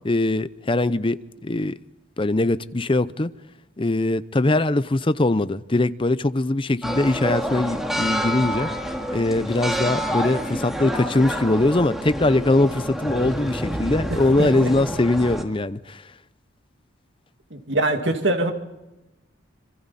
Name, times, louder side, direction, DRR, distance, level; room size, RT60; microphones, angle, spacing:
voice 1, 0.0-1.8 2.2-3.3 3.8-8.7 9.1-16.0, left 2 dB, 25° left, 14 dB, 0.7 m, -21 dB
sound 1, 6.8-15.4, equal, ahead, 2.1 m, -28 dB
voice 2, 14.1-14.7 17.5-18.5, right 2 dB, 65° right, 4 dB, 2.4 m, -24 dB
27.0 x 25.5 x 4.2 m, 0.99 s
head